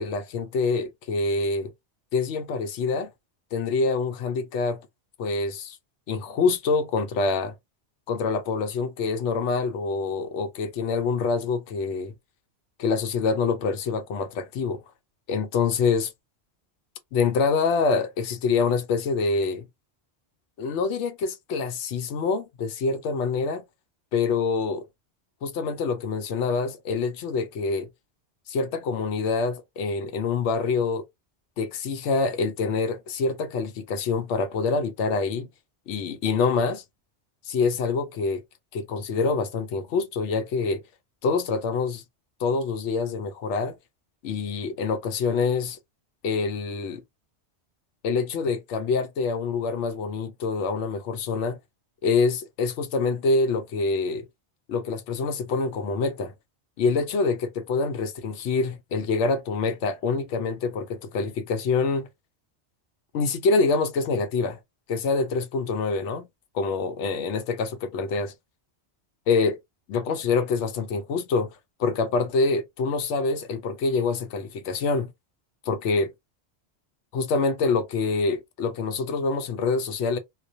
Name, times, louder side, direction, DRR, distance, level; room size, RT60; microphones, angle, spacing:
voice 1, 0.0-1.7 2.1-3.1 3.5-4.8 5.2-5.8 6.1-7.5 8.1-12.1 12.8-14.8 15.3-16.1 17.1-19.7 20.6-23.6 24.1-24.9 25.4-27.9 28.5-31.0 31.6-35.5 35.9-36.8 37.4-38.4 38.7-40.8 41.2-42.0 42.4-43.8 44.2-45.8 46.2-47.0 48.0-51.6 52.0-54.2 54.7-56.3 56.8-62.1 63.1-64.6 64.9-66.3 66.5-68.3 69.3-69.6 69.9-75.1 75.7-76.1 77.1-80.2, left 4 dB, 90° left, 0.9 m, -26 dB
2.4 x 2.1 x 2.5 m
omnidirectional pair, 1.2 m